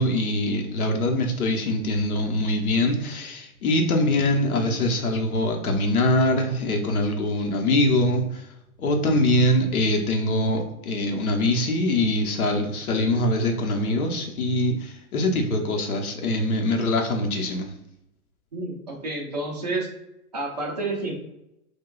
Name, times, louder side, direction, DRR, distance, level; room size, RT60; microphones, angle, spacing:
voice 1, 0.0-8.4 8.8-17.7, left 1 dB, 80° left, 3 dB, 0.9 m, -23 dB
voice 2, 18.5-19.9 20.3-21.1, right 2 dB, 30° right, -2 dB, 0.4 m, -29 dB
4.7 x 2.3 x 2.3 m, 0.85 s
hypercardioid pair, 180°, 44 cm